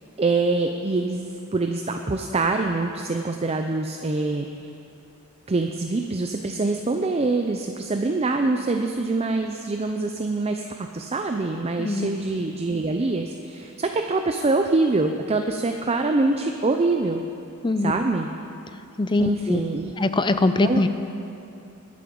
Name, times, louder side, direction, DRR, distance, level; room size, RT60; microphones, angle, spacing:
voice 1, 0.2-4.5 5.5-17.2 17.8-18.3 19.2-19.9 20.6-20.9, right 3 dB, 30° right, 5 dB, 0.5 m, -24 dB
voice 2, 11.8-12.1 17.6-18.0 19.0-19.6 20.0-20.9, left 2 dB, 20° left, 10 dB, 0.5 m, -22 dB
21.0 x 8.6 x 5.3 m, 2.7 s
head